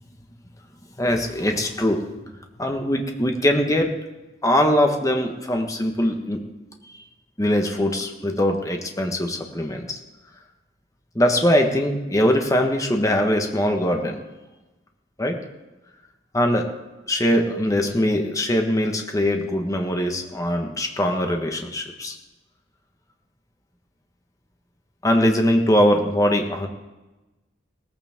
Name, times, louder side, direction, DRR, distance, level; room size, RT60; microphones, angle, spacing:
voice 1, 1.0-2.1 2.6-3.9 4.4-6.4 6.9-7.0 7.4-10.0 11.1-14.2 15.2-15.4 16.3-16.7 17.1-22.2 25.0-26.7, equal, 15° left, 3 dB, 1.3 m, -21 dB
17.5 x 14.5 x 3.7 m, 1.1 s
head